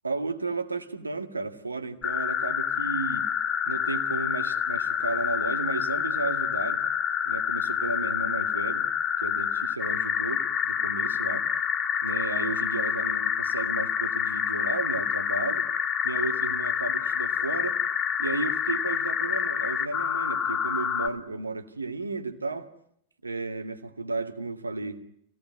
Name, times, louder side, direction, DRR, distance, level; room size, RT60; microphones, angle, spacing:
voice 1, 0.0-3.3 3.7-6.8 7.3-8.9 9.2-11.5 12.0-15.7 16.0-17.8 18.2-22.7 23.2-25.0, right 3 dB, 80° right, 1.9 m, -33 dB
sound 1, 2.0-21.1, left 8 dB, 30° left, 2.7 m, -28 dB
27.0 x 18.0 x 9.3 m
figure-of-eight pair, 90°, 0 cm